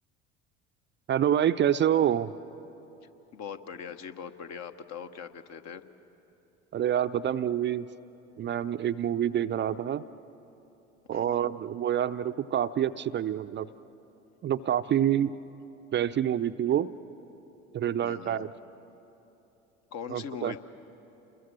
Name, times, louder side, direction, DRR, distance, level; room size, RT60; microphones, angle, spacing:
voice 1, 1.1-2.3 6.7-7.9 8.4-10.0 11.1-13.7 14.4-15.4 15.9-16.9 17.7-18.5 20.1-20.5, right 10 dB, 30° right, 11 dB, 0.5 m, -27 dB
voice 2, 3.3-5.8 11.1-11.5 18.0-18.5 19.9-20.6, left 7 dB, 50° left, 8 dB, 1.3 m, -41 dB
28.5 x 21.5 x 7.5 m, 3.0 s
hypercardioid pair, 65°, 36 cm